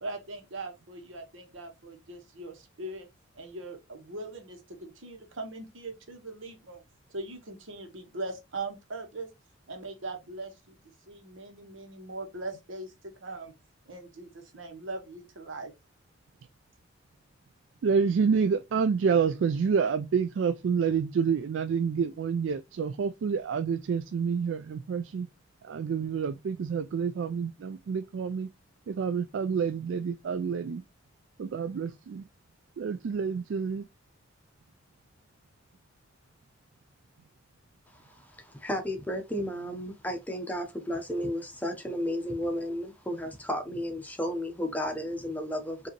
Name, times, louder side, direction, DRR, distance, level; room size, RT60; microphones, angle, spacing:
voice 1, 0.0-3.1 3.3-6.8 7.1-9.3 9.7-10.8 11.1-13.5 13.9-15.7, right 2 dB, 90° right, 1.2 m, -40 dB
voice 2, 17.8-25.3 25.6-28.5 28.9-30.8 31.4-32.2 32.8-33.8, right 6 dB, 70° right, 0.3 m, -28 dB
voice 3, 37.9-45.9, equal, 10° left, 0.7 m, -33 dB
5.0 x 2.7 x 2.9 m
head